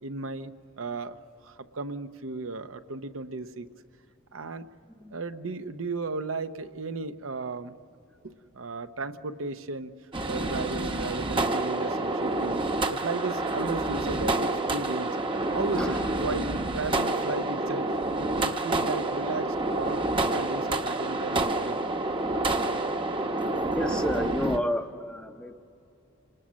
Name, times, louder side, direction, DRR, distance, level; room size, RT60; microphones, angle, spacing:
voice 1, 0.0-0.5 0.8-1.2 1.4-3.7 4.3-4.7 5.1-7.7 8.2-9.9 10.3-12.6 12.9-15.2 15.5-21.8, right 3 dB, 85° right, 9 dB, 0.9 m, -35 dB
sound 1, 10.1-24.6, right 2 dB, 25° right, 0.9 m, -28 dB
voice 2, 23.3-25.5, equal, 5° left, 3 dB, 0.6 m, -31 dB
28.5 x 20.0 x 6.3 m, 2.7 s
head